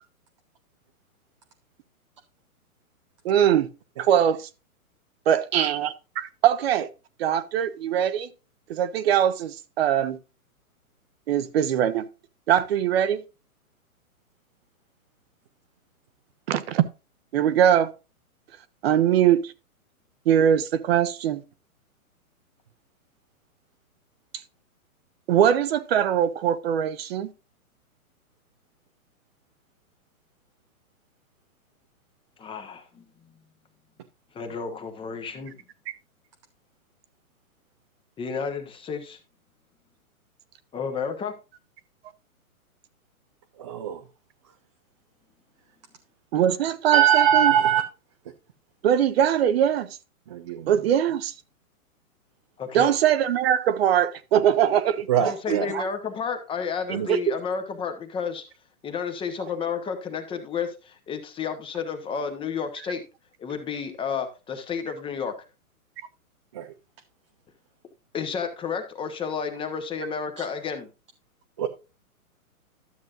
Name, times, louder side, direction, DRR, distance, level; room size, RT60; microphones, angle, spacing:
voice 1, 3.2-3.7 4.0-4.5 5.3-5.9 6.2-6.9 7.2-8.3 8.7-10.2 11.3-12.0 12.5-13.2 16.5-16.9 17.3-17.9 18.8-19.5 20.3-21.4 25.3-27.3 46.3-47.5 48.8-49.9 50.7-51.3 52.7-55.1 55.5-55.9 57.1-57.2, right 10 dB, 45° right, 0.9 m, -21 dB
voice 2, 32.4-33.0 34.3-35.5 38.2-39.2 40.7-41.3 52.6-52.9 55.2-58.4 58.8-63.0 63.4-65.3 68.1-70.9, left 6 dB, 10° left, 0.9 m, -31 dB
voice 3, 43.6-44.0 46.9-47.8 50.3-50.7 55.1-55.7 56.9-57.1 66.5-66.7 70.4-70.5 71.6-71.7, right 10 dB, 20° right, 0.4 m, -22 dB
12.5 x 7.3 x 2.5 m
hypercardioid pair, 130°, 44 cm